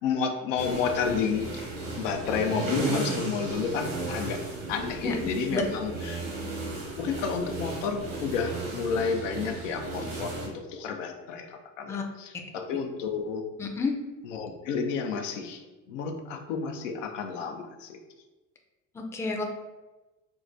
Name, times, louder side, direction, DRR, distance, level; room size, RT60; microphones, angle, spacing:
voice 1, 0.0-1.5 2.0-4.4 4.7-6.2 7.0-13.5 14.2-18.0, left 5 dB, 90° left, 5 dB, 0.5 m, -31 dB
sound 1, 0.6-10.5, right 2 dB, 85° right, 1.3 m, -35 dB
voice 2, 13.6-14.0 18.9-19.4, left 4 dB, 10° left, 2 dB, 0.4 m, -29 dB
4.7 x 2.1 x 2.5 m, 1.2 s
supercardioid pair, 85°, 36 cm